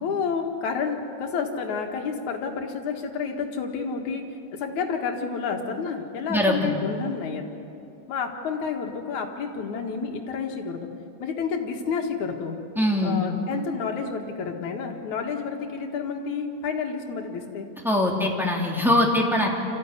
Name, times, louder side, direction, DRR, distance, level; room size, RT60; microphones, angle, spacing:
voice 1, 0.0-4.3 4.5-7.4 8.1-10.9 11.2-12.6 13.0-17.7, left 5 dB, 80° left, 3 dB, 3.1 m, -30 dB
voice 2, 6.3-6.7 12.8-13.3 17.8-19.5, left 1 dB, ahead, -2 dB, 2.4 m, -22 dB
26.5 x 14.5 x 9.7 m, 2.7 s
omnidirectional pair, 3.3 m